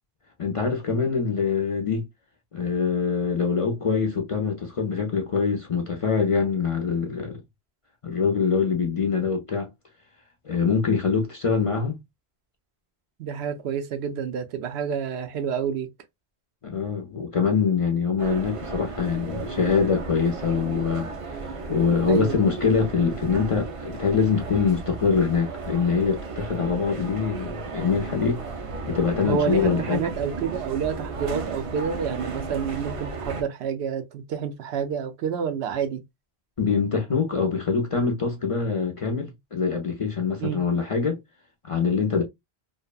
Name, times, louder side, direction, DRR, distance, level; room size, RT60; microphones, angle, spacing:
voice 1, 0.4-2.0 2.5-7.4 8.0-9.7 10.4-12.0 16.6-21.1 21.7-28.4 28.9-30.0 36.6-41.2 41.6-42.2, left 5 dB, 50° left, 0.4 m, -24 dB
voice 2, 13.2-15.9 22.0-22.4 29.2-36.0 40.4-40.6, right 7 dB, 80° right, 0.8 m, -29 dB
sound 1, 18.2-33.4, right 4 dB, 55° right, 0.4 m, -34 dB
2.7 x 2.1 x 2.3 m
omnidirectional pair, 1.1 m